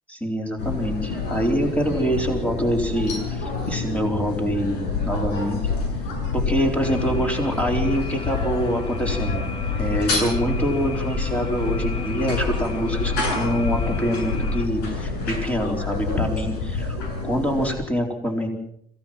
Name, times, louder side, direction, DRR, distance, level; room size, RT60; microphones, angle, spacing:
voice 1, 0.1-5.6 6.3-9.5 9.8-17.0 17.2-18.5, equal, 10° left, 2 dB, 4.0 m, -25 dB
sound 1, 0.6-17.8, left 3 dB, 85° left, 7.6 m, -27 dB
sound 2, 6.8-14.7, left 4 dB, 30° left, 2.2 m, -37 dB
26.5 x 16.5 x 6.0 m, 0.73 s
cardioid pair, 155°, 16 cm